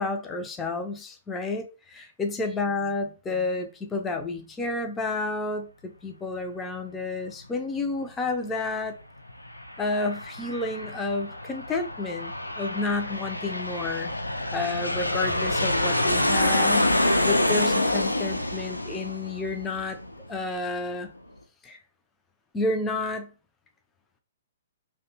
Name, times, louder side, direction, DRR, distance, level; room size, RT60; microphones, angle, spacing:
voice 1, 0.0-9.0 9.8-14.1 14.5-20.0 20.3-21.1 21.6-21.8 22.5-23.3, left 3 dB, 15° left, 0.4 m, -30 dB
Aircraft, 9.3-20.5, left 1 dB, 90° left, 0.4 m, -27 dB
2.6 x 2.2 x 2.8 m
figure-of-eight pair, 120°, 0 cm